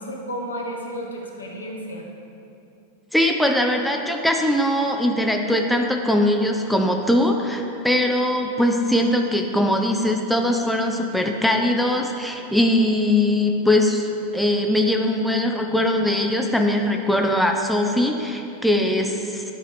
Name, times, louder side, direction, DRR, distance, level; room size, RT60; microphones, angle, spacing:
voice 1, 0.0-2.0, equal, 75° left, 0 dB, 1.0 m, -32 dB
voice 2, 3.1-19.4, left 1 dB, ahead, 2 dB, 0.5 m, -21 dB
10.5 x 4.9 x 3.3 m, 2.9 s
figure-of-eight pair, 90°, 0 cm